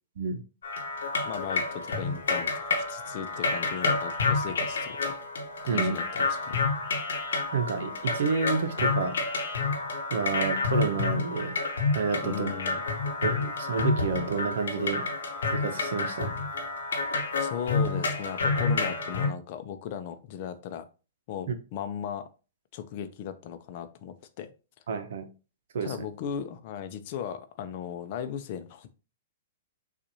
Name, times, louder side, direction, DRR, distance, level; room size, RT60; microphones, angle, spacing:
sound 1, 0.6-19.3, left 3 dB, 75° left, 0.9 m, -29 dB
voice 1, 1.2-5.1 5.6-6.6 12.2-12.8 17.4-20.9 21.3-22.3 22.7-24.5 25.8-28.9, left 8 dB, 50° left, 0.6 m, -37 dB
voice 2, 5.7-6.0 7.5-9.2 10.1-11.6 11.9-12.5 13.2-15.1 15.5-16.4 24.9-25.3 25.7-25.9, right 5 dB, 65° right, 0.8 m, -29 dB
6.6 x 2.5 x 2.8 m
hypercardioid pair, 115°, 0 cm